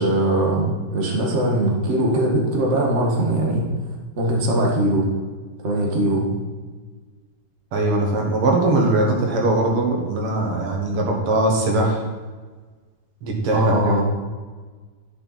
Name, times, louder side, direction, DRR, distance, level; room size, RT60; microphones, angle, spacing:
voice 1, 0.0-3.6 4.2-5.1 5.6-6.2 13.5-14.0, right 1 dB, 35° right, -1 dB, 1.8 m, -20 dB
voice 2, 7.7-12.0 13.2-13.8, right 2 dB, 90° right, 0 dB, 2.6 m, -20 dB
10.5 x 6.8 x 4.2 m, 1.4 s
omnidirectional pair, 2.4 m